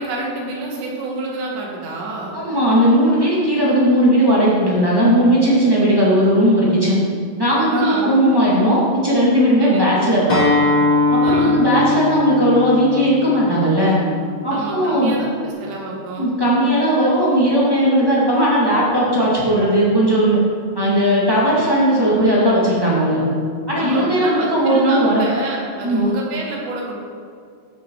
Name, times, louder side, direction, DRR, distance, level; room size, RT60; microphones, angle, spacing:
voice 1, 0.0-2.4 7.7-8.2 9.6-9.9 11.2-11.6 14.5-16.3 23.8-27.0, right 2 dB, 75° right, -2 dB, 4.0 m, -28 dB
voice 2, 2.3-7.0 7.4-10.4 11.1-14.0 14.4-15.1 16.2-20.4 20.7-23.2 23.7-25.3 25.8-26.1, equal, 20° right, -7 dB, 0.6 m, -17 dB
Acoustic guitar, 10.3-15.5, left 3 dB, 35° left, 2.1 m, -21 dB
14.0 x 6.7 x 4.8 m, 2.2 s
omnidirectional pair, 4.9 m